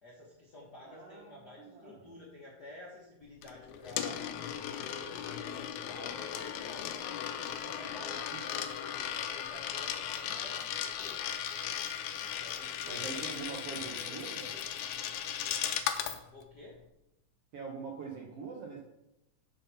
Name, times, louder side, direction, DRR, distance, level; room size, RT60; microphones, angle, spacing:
voice 1, 0.0-4.4 4.7-7.1 7.6-11.3 12.2-14.6 16.3-16.8, left 1 dB, 50° left, -5 dB, 1.2 m, -51 dB
voice 2, 0.8-2.0 8.3-8.4 12.8-14.5 17.5-18.8, right 5 dB, 65° right, -1 dB, 1.5 m, -43 dB
Coin (dropping), 3.4-16.2, left 9 dB, 80° left, 1.8 m, -37 dB
7.4 x 5.8 x 5.7 m, 0.89 s
omnidirectional pair, 3.9 m